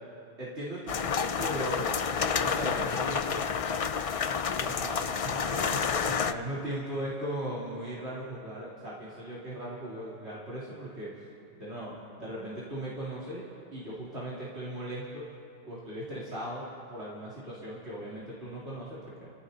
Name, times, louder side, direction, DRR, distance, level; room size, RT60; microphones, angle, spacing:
voice 1, 0.4-3.5 4.6-11.1 11.6-15.3 15.7-19.3, right 1 dB, 90° right, -9 dB, 3.7 m, -38 dB
sound 1, 0.9-6.3, left 6 dB, 50° left, 0.4 m, -29 dB
29.0 x 17.5 x 2.8 m, 2.6 s
omnidirectional pair, 1.1 m